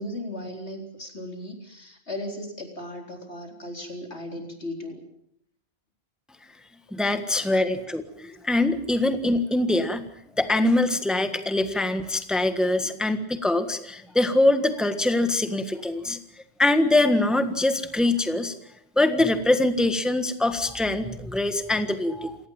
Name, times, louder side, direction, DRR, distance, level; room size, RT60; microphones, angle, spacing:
voice 1, 0.0-5.0 12.6-12.9, left 1 dB, 75° left, 3 dB, 4.4 m, -37 dB
voice 2, 6.9-10.1 10.4-16.2 16.6-18.5 19.0-22.4, left 2 dB, ahead, 8 dB, 1.5 m, -23 dB
28.5 x 18.5 x 7.3 m, 0.72 s
omnidirectional pair, 1.1 m